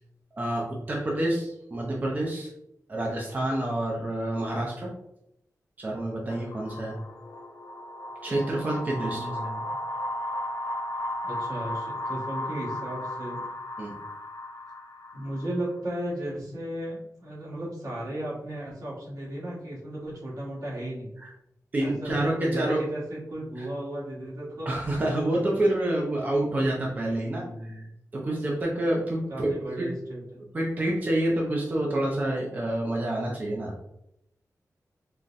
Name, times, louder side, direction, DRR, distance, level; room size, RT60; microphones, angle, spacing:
voice 1, 0.4-2.5 2.9-4.9 5.8-7.0 8.2-9.3 13.8-13.9 21.2-21.3 21.7-22.8 23.6-23.7 24.7-27.4 28.1-29.5 29.8-29.9 30.5-33.7, right 1 dB, 30° right, -3 dB, 0.4 m, -28 dB
sound 1, 6.3-15.8, left 1 dB, 80° left, 0.4 m, -35 dB
voice 2, 8.9-9.8 11.2-13.5 15.1-21.1 21.8-24.7 27.1-27.8 29.3-30.5, right 1 dB, 75° right, -6 dB, 1.3 m, -35 dB
3.8 x 2.1 x 2.5 m, 0.80 s
wide cardioid pair, 175°, 6 cm